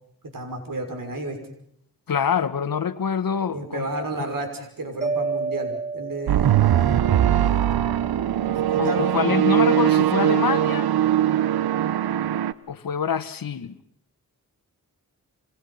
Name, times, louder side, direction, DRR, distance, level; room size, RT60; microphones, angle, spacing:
voice 1, 0.3-1.4 3.5-6.6 8.4-9.3, right 2 dB, 65° right, 6.1 m, -32 dB
voice 2, 2.1-3.9 8.8-10.9 12.7-13.8, left 7 dB, 65° left, 1.4 m, -25 dB
Mallet percussion, 5.0-7.1, right 4 dB, 20° right, 1.8 m, -29 dB
sound 1, 6.3-12.5, right 11 dB, 85° right, 0.9 m, -21 dB
28.5 x 26.5 x 5.7 m
cardioid pair, 50°, 37 cm